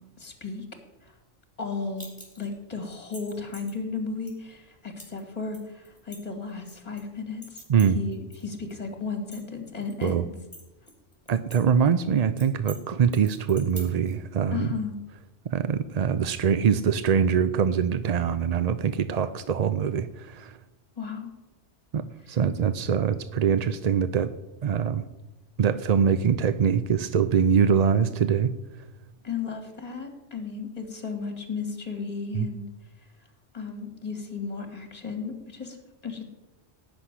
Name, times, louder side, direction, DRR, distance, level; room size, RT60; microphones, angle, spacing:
voice 1, 0.2-0.6 1.0-1.1 1.6-7.6 7.9-10.3 14.5-15.0 21.0-21.3 22.2-22.4 29.2-32.6 33.0-33.1 33.5-35.8 36.0-36.2, left 4 dB, 35° left, 5 dB, 2.3 m, -34 dB
sound 1, 2.0-2.5 2.9-3.7 4.3-4.4 5.0-5.2 5.5-7.0 7.4-8.4 8.7-8.8 9.2-10.1 10.5-11.6 11.9-12.0 12.4-12.8 13.1-14.1, right 1 dB, 15° left, 4.2 m, -45 dB
voice 2, 11.3-14.7 15.5-20.6 21.9-24.3 24.6-25.0 25.6-28.5 32.3-32.5, right 7 dB, 50° right, 12 dB, 0.5 m, -23 dB
17.0 x 6.1 x 9.9 m, 1.0 s
omnidirectional pair, 1.2 m